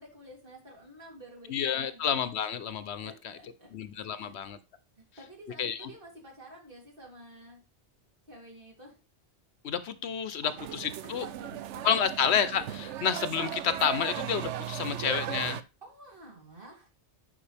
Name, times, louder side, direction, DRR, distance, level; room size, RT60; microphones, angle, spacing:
voice 1, 0.0-2.1 3.0-3.7 4.1-4.4 5.0-7.6 8.3-9.0 10.4-10.6 10.8-12.0 15.8-16.9, right 1 dB, 50° right, -1 dB, 3.3 m, -50 dB
voice 2, 1.5-3.4 3.7-4.6 5.6-5.9 9.6-11.3 11.8-15.6, left 7 dB, 70° left, 13 dB, 0.9 m, -30 dB
sound 1, 10.6-15.6, right 11 dB, 80° right, 0.9 m, -37 dB
9.9 x 5.3 x 3.3 m, 0.30 s
omnidirectional pair, 1.2 m